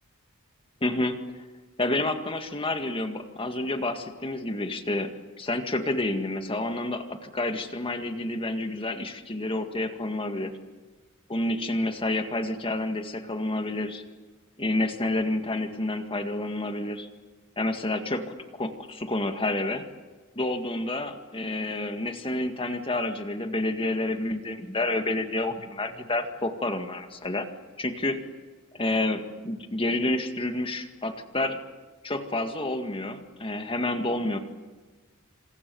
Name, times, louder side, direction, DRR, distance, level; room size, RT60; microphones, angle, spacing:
voice 1, 0.8-1.2 1.8-5.1 5.4-10.5 11.3-14.0 14.6-17.1 17.6-19.8 20.4-27.5 27.8-28.2 28.7-31.6 32.0-34.4, left 2 dB, 25° left, 6 dB, 2.0 m, -29 dB
27.0 x 27.0 x 7.1 m, 1.3 s
head